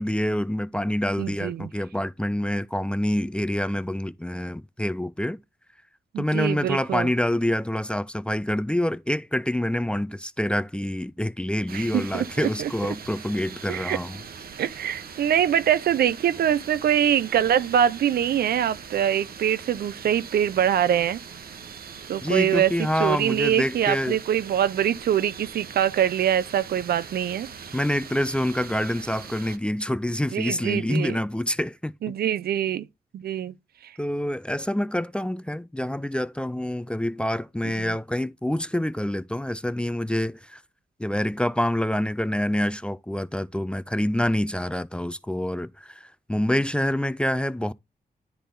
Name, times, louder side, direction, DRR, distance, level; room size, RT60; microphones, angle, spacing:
voice 1, 0.0-5.4 6.2-14.2 22.2-24.2 27.7-31.9 34.0-40.6 41.0-47.7, left 1 dB, 5° left, 0.3 m, -26 dB
voice 2, 1.2-1.7 6.1-7.1 11.7-12.7 13.7-14.0 14.6-21.2 22.1-22.7 23.0-27.5 30.3-31.2 32.0-32.9 33.1-33.5 37.8-37.9, right 10 dB, 90° right, 0.5 m, -24 dB
sound 1, 11.7-29.6, right 6 dB, 75° right, 0.9 m, -41 dB
10.0 x 3.5 x 3.8 m
wide cardioid pair, 95°, 16 cm